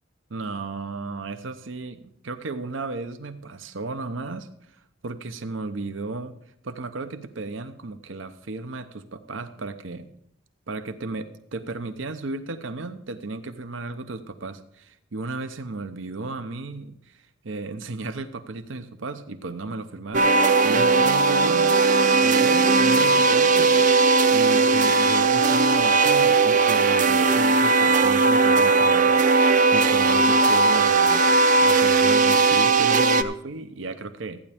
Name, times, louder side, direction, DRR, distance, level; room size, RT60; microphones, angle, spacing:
voice 1, 0.3-4.5 5.0-6.3 6.6-10.1 10.7-20.3 20.6-21.8 22.2-23.8 24.3-34.4, right 3 dB, 85° right, 10 dB, 0.8 m, -34 dB
sound 1, 20.1-33.2, right 4 dB, 40° right, 0.5 m, -18 dB
14.5 x 9.8 x 3.5 m, 0.71 s
head